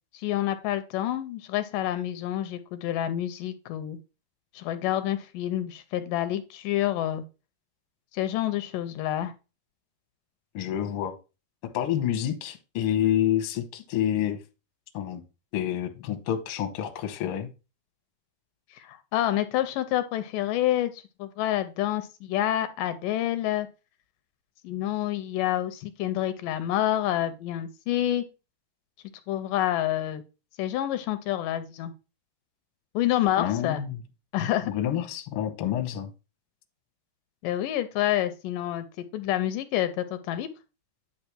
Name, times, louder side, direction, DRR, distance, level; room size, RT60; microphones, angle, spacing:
voice 1, 0.1-4.0 4.5-7.2 8.1-9.3 18.7-23.7 24.6-28.2 29.3-30.2 30.6-31.9 32.9-33.8 34.3-34.7 37.4-40.5, left 12 dB, 85° left, 2.2 m, -28 dB
voice 2, 10.5-11.2 11.7-14.4 14.9-15.2 15.5-17.5 33.4-34.0 34.6-36.1, left 10 dB, 65° left, 1.4 m, -28 dB
9.8 x 3.3 x 6.0 m
omnidirectional pair, 4.0 m